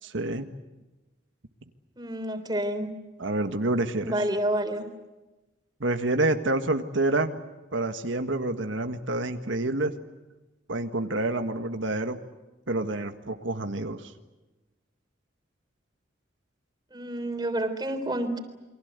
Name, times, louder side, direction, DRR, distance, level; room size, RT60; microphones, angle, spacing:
voice 1, 0.0-0.4 3.2-4.2 5.8-7.4 7.7-9.9 10.7-12.2 12.7-14.1, right 2 dB, 85° right, 7 dB, 1.6 m, -28 dB
voice 2, 2.0-2.9 4.0-4.8 16.9-18.4, right 1 dB, 20° right, 7 dB, 3.6 m, -29 dB
29.0 x 24.0 x 8.2 m, 1.1 s
head